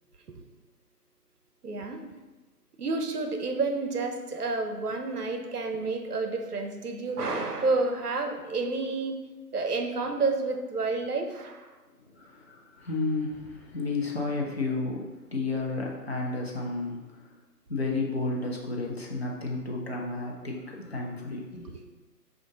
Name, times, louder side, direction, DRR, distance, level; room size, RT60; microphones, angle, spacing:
voice 1, 1.6-2.0 2.8-9.2 9.5-11.7, right 3 dB, 70° right, 5 dB, 0.7 m, -30 dB
voice 2, 12.1-17.2 17.7-21.8, left 3 dB, 40° left, -2 dB, 0.6 m, -32 dB
5.3 x 2.5 x 3.6 m, 1.2 s
figure-of-eight pair, 150°, 49 cm